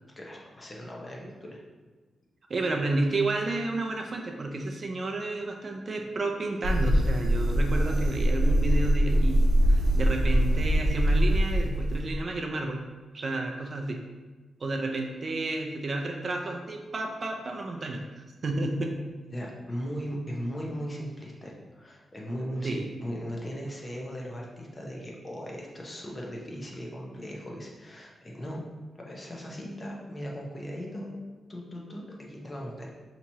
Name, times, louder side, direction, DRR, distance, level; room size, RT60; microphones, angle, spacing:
voice 1, 0.2-1.6 19.3-28.6 29.0-31.2 31.5-32.9, equal, 25° left, -2 dB, 0.8 m, -38 dB
voice 2, 2.5-12.8 13.1-14.0 14.6-19.0 22.6-22.9, right 2 dB, 45° right, 2 dB, 0.4 m, -31 dB
sound 1, 6.6-12.2, equal, 80° right, 0.7 m, -23 dB
5.7 x 2.9 x 2.7 m, 1.3 s
cardioid pair, 105°, 0 cm